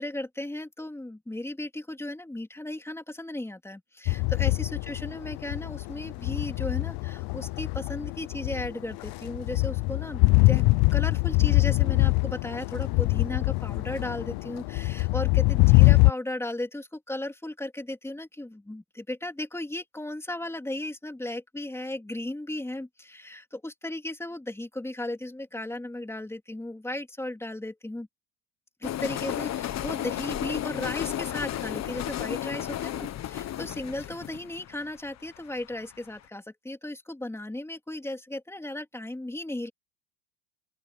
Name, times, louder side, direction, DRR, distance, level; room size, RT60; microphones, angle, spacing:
voice 1, 0.0-10.6 10.9-28.1 28.8-39.7, left 1 dB, 5° left, 3.6 m, -36 dB
sound 1, 4.1-16.1, left 25 dB, 55° left, 0.9 m, -23 dB
sound 2, 28.8-35.9, left 12 dB, 35° left, 1.3 m, -33 dB
open air
supercardioid pair, 120°, 45 cm